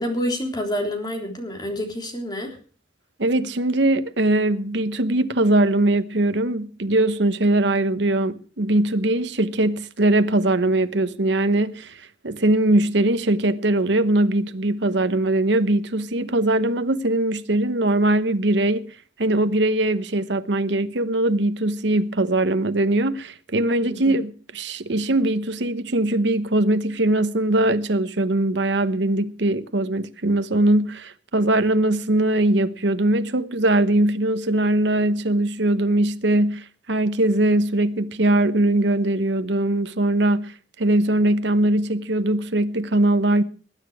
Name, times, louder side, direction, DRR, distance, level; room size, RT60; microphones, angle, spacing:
voice 1, 0.0-2.6 23.9-24.0, equal, 20° left, 3.5 m, -28 dB
voice 2, 3.2-18.9 19.2-43.4, right 1 dB, 70° right, 1.0 m, -21 dB
20.0 x 9.8 x 4.9 m
head